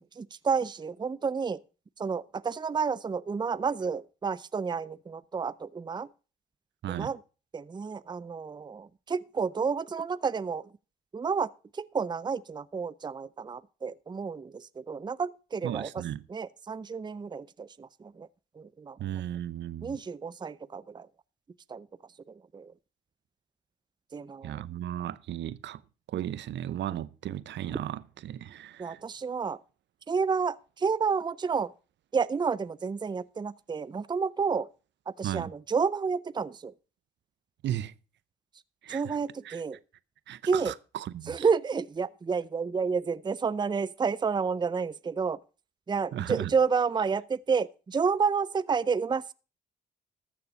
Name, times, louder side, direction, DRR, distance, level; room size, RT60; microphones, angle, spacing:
voice 1, 0.2-1.6 2.0-6.1 6.9-7.2 7.5-10.6 11.1-11.5 11.8-15.9 16.3-17.9 18.2-18.3 18.8-19.0 19.8-21.1 21.7-21.8 22.5-22.7 24.1-24.6 28.8-29.6 30.1-31.7 32.1-34.7 35.2-36.7 38.9-39.8 40.5-40.7 41.3-45.4 45.9-49.2, right 5 dB, 20° right, 0.5 m, -30 dB
voice 2, 15.6-16.2 19.0-20.0 24.4-25.8 26.1-29.0 35.2-35.5 37.6-37.9 38.8-39.2 39.4-39.6 40.3-41.5 46.1-46.5, right 12 dB, 65° right, 0.7 m, -35 dB
13.5 x 6.8 x 5.4 m
supercardioid pair, 55°, 20 cm